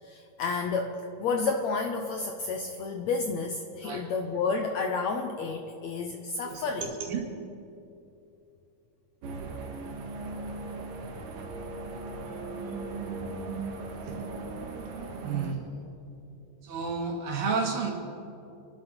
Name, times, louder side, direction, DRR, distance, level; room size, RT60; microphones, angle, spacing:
voice 1, 0.0-6.9, left 4 dB, 75° left, 4 dB, 1.7 m, -31 dB
voice 2, 6.4-7.2 14.0-14.3 15.2-15.9 16.6-17.9, right 5 dB, 75° right, 0 dB, 3.8 m, -32 dB
sound 1, 9.2-15.5, right 3 dB, 60° right, 2.3 m, -37 dB
28.0 x 11.5 x 4.4 m, 2.8 s
omnidirectional pair, 4.0 m